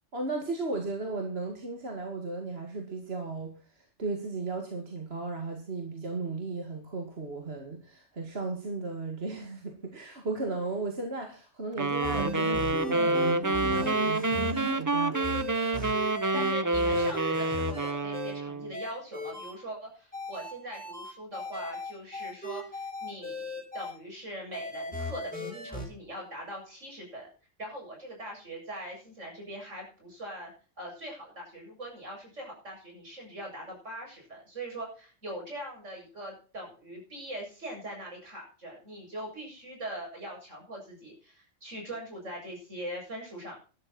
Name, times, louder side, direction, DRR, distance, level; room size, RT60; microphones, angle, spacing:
voice 1, 0.1-15.3 15.7-16.1, right 3 dB, 55° right, 2 dB, 2.5 m, -36 dB
sound 1, 11.8-18.7, right 2 dB, 25° right, 0.4 m, -28 dB
sound 2, 12.0-14.7 15.1-18.3 18.7-19.5 20.1-23.9 24.5-25.9, equal, 5° left, 5.1 m, -36 dB
voice 2, 16.3-27.3 27.6-30.5 30.8-43.6, right 1 dB, 75° right, 0 dB, 7.9 m, -42 dB
13.0 x 12.5 x 4.4 m, 0.37 s
omnidirectional pair, 1.3 m